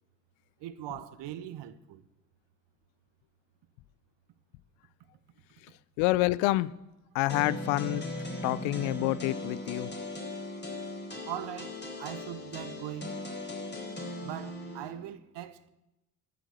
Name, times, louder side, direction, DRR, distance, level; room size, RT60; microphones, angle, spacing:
voice 1, 0.6-2.0 11.3-13.2 14.2-15.7, right 12 dB, 65° right, 1.0 m, -41 dB
voice 2, 6.0-6.7 7.1-8.1 8.4-9.9, left 18 dB, 75° left, 0.6 m, -27 dB
sound 1, 7.3-14.9, left 1 dB, 25° left, 4.2 m, -38 dB
11.5 x 9.1 x 6.6 m
hypercardioid pair, 40°, 46 cm